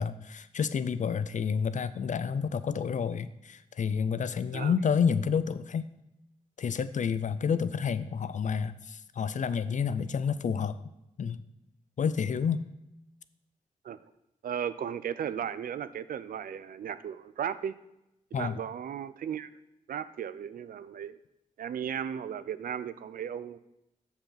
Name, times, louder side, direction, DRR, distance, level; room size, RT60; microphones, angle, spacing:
voice 1, 0.0-5.9 6.6-10.8 11.2-11.4 12.0-12.7 18.3-18.6, left 6 dB, 60° left, 14 dB, 0.5 m, -29 dB
voice 2, 14.4-17.7 18.3-19.5 19.9-21.1 21.6-23.6, right 8 dB, 85° right, 14 dB, 0.4 m, -35 dB
6.7 x 5.5 x 5.7 m, 0.89 s
cardioid pair, 55°, 14 cm